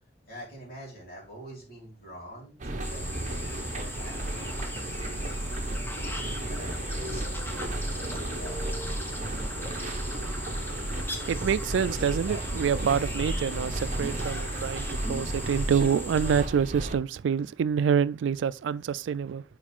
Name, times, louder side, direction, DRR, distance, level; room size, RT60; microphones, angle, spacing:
voice 1, 0.3-5.8 6.5-9.4, right 1 dB, 55° left, 3.3 m, -47 dB
sound 1, 2.6-17.0, right 1 dB, 40° right, 1.0 m, -33 dB
sound 2, 2.8-16.4, left 1 dB, 10° left, 0.9 m, -39 dB
voice 2, 11.3-19.4, right 7 dB, 85° right, 0.3 m, -27 dB
7.3 x 4.8 x 3.6 m
head